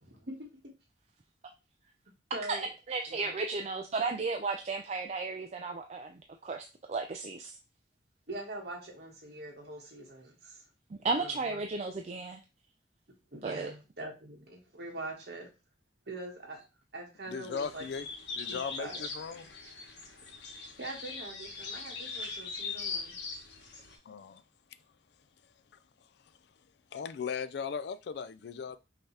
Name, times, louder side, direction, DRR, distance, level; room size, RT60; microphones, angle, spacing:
voice 1, 0.0-0.5 2.3-2.7 3.1-3.3 8.3-10.6 11.1-11.6 13.3-15.5 16.1-16.6 16.9-17.9 18.5-19.0 20.8-23.2, right 1 dB, 65° right, 1.5 m, -43 dB
voice 2, 2.5-7.6 11.0-12.4 13.4-13.7 19.6-19.7, right 3 dB, 40° right, 0.4 m, -34 dB
voice 3, 17.3-18.1 18.4-19.5 24.1-24.4 26.9-28.8, left 6 dB, 65° left, 0.3 m, -37 dB
sound 1, 17.5-24.0, left 4 dB, 80° left, 1.1 m, -41 dB
5.6 x 2.8 x 3.3 m
head